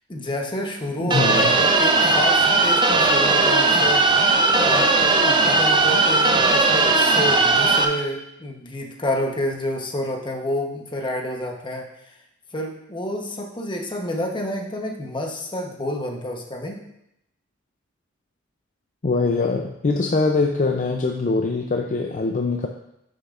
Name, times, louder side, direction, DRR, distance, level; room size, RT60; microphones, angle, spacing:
voice 1, 0.1-11.9 12.5-16.9, left 1 dB, 25° left, 1 dB, 1.0 m, -29 dB
voice 2, 1.0-1.5 19.0-22.7, left 3 dB, 40° left, 3 dB, 0.5 m, -22 dB
sound 1, 1.1-7.8, right 3 dB, 25° right, 0.6 m, -18 dB
9.8 x 6.6 x 2.5 m, 0.82 s
head